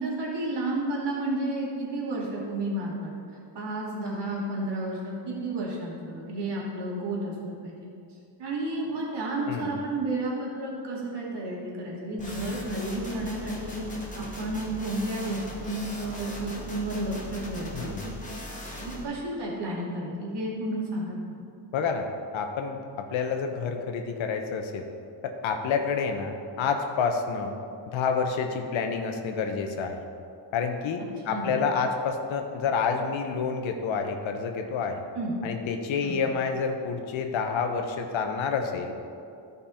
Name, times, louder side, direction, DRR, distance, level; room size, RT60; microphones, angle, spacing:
voice 1, 0.0-3.1 3.5-7.8 8.4-13.8 14.1-17.9 18.8-21.2 31.3-31.6 35.1-35.4 36.0-36.2, right 1 dB, 60° right, -4 dB, 2.4 m, -31 dB
voice 2, 9.5-9.8 17.7-18.1 21.7-22.1 22.3-24.8 25.2-27.5 27.9-30.0 30.5-35.0 35.4-39.0, left 5 dB, 80° left, 4 dB, 1.0 m, -28 dB
sound 1, 12.2-19.0, left 1 dB, 15° left, 1.5 m, -39 dB
13.0 x 5.4 x 4.3 m, 2.5 s
cardioid pair, 120°, 46 cm